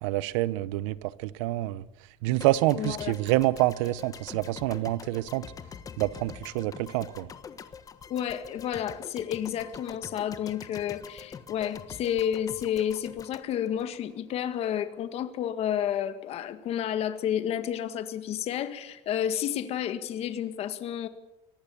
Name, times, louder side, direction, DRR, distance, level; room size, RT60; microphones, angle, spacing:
voice 1, 0.0-1.8 2.2-5.4 6.0-7.3, right 17 dB, 90° right, 0.9 m, -27 dB
sound 1, 2.4-14.6, left 6 dB, 25° left, 1.3 m, -45 dB
voice 2, 2.8-3.1 8.1-21.1, left 10 dB, 40° left, 1.8 m, -31 dB
24.0 x 19.0 x 7.1 m
cardioid pair, 155°, 15 cm